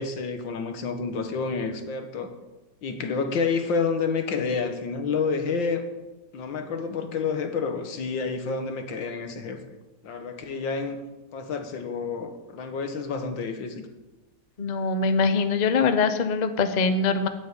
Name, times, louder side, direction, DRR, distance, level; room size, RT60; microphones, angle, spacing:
voice 1, 0.0-2.3 2.8-5.8 6.3-9.6 10.0-11.0 11.3-13.9, left 5 dB, 90° left, 7 dB, 2.0 m, -29 dB
voice 2, 14.6-17.3, left 4 dB, 40° left, 9 dB, 0.6 m, -23 dB
9.8 x 8.7 x 8.3 m, 1.1 s
omnidirectional pair, 2.0 m